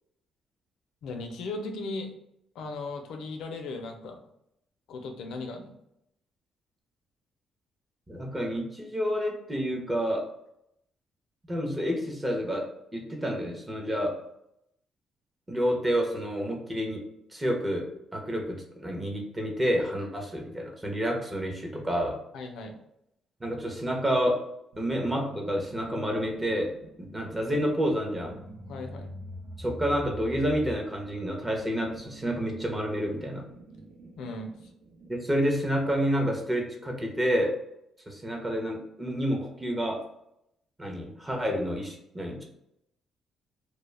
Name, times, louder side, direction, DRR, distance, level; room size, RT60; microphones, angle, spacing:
voice 1, 1.0-2.1 2.5-4.2 4.9-5.8 22.3-22.8 28.7-29.1 34.2-34.5, left 3 dB, 80° left, 4 dB, 0.4 m, -37 dB
voice 2, 8.1-10.3 11.5-14.2 15.5-17.0 17.3-17.9 18.1-22.2 23.4-24.5 24.8-26.7 27.0-28.3 29.6-33.4 35.1-37.5 38.1-40.0 40.8-42.4, equal, 20° right, 1 dB, 0.6 m, -29 dB
sound 1, 24.7-35.2, right 1 dB, 65° right, 0.6 m, -46 dB
2.2 x 2.0 x 3.2 m, 0.78 s
cardioid pair, 90°, 0 cm